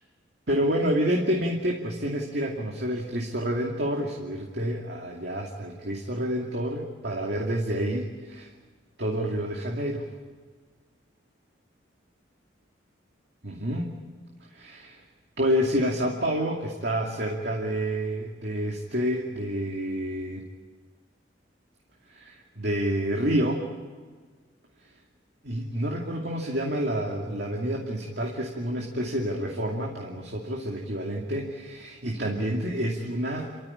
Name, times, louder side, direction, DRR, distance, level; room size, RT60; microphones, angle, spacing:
voice 1, 0.5-8.5 9.0-10.1 13.4-13.9 14.5-15.0 15.4-20.4 22.1-23.7 25.4-33.5, equal, 60° right, -1 dB, 2.5 m, -28 dB
30.0 x 14.0 x 10.0 m, 1.5 s
head